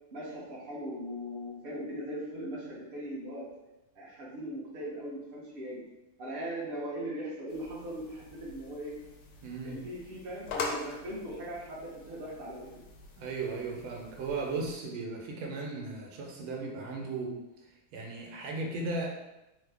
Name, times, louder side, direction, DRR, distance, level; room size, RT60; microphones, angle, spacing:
voice 1, 0.1-3.5 4.0-5.8 6.2-9.0 9.6-12.7, equal, 55° right, -6 dB, 0.6 m, -39 dB
sound 1, 7.5-14.7, left 4 dB, 75° left, 1.0 m, -44 dB
voice 2, 9.4-9.8 13.2-17.4 17.9-19.1, right 3 dB, 85° right, 0 dB, 1.5 m, -36 dB
3.6 x 2.0 x 3.3 m, 0.97 s
omnidirectional pair, 2.2 m